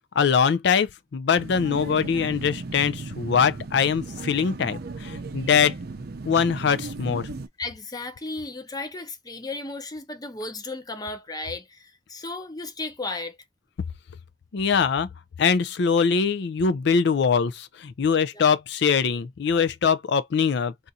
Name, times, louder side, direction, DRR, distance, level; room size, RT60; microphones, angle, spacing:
voice 1, 0.2-5.8 6.3-7.3 14.5-15.1 15.4-20.9, left 6 dB, 65° left, 0.4 m, -22 dB
sound 1, 1.4-7.5, right 3 dB, 55° right, 0.5 m, -36 dB
voice 2, 7.6-13.4 18.3-18.5, left 2 dB, 20° left, 0.7 m, -34 dB
2.5 x 2.5 x 4.0 m
head